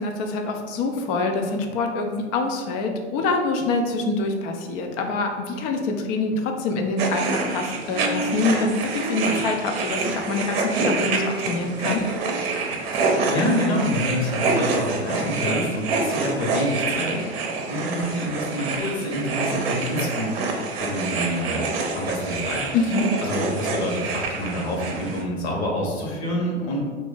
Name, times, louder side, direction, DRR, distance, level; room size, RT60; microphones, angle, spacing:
voice 1, 0.0-12.0 22.7-23.1, left 3 dB, 30° left, 3 dB, 0.4 m, -25 dB
sound 1, 7.0-7.5 7.9-8.4 8.7-9.5 9.9-14.5, right 3 dB, 15° right, 0.9 m, -34 dB
sound 2, 7.0-25.2, right 3 dB, 55° right, 0.7 m, -27 dB
voice 2, 12.9-20.3 20.8-21.7 22.0-22.9 23.2-26.8, left 1 dB, 65° left, -1 dB, 1.1 m, -27 dB
2.7 x 2.5 x 3.8 m, 1.5 s
hypercardioid pair, 105°, 35 cm